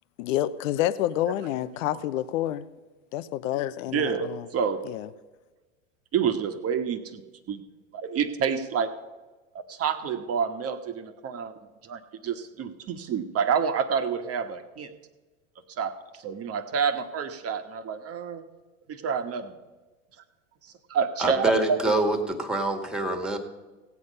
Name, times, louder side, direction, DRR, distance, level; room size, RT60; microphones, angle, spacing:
voice 1, 0.2-2.7 3.1-4.5 4.8-5.1, left 13 dB, 70° left, 0.7 m, -28 dB
voice 2, 3.9-4.8 6.1-7.2 7.5-7.6 7.9-8.9 9.7-11.5 11.8-14.9 15.8-18.4 18.9-19.6 20.6-21.8, right 7 dB, 35° right, 1.4 m, -28 dB
voice 3, 21.2-23.4, right 2 dB, ahead, 1.8 m, -25 dB
16.5 x 8.4 x 5.4 m
hypercardioid pair, 100°, 40 cm